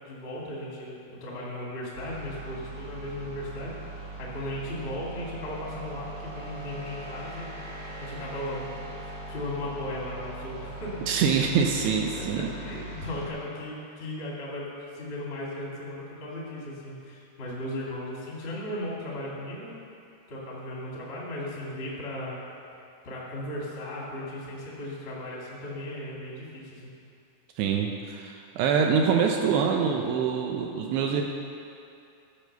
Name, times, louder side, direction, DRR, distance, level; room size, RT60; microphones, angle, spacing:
voice 1, 0.0-7.5 8.0-11.1 11.5-11.6 12.1-19.8 20.3-22.4 23.0-26.9, left 1 dB, 50° left, -5 dB, 0.7 m, -37 dB
sound 1, 1.9-13.3, right 2 dB, 60° right, 1.5 m, -40 dB
voice 2, 11.1-12.5 27.6-31.2, right 6 dB, 80° right, 2 dB, 2.4 m, -25 dB
13.5 x 5.3 x 6.6 m, 2.6 s
omnidirectional pair, 5.4 m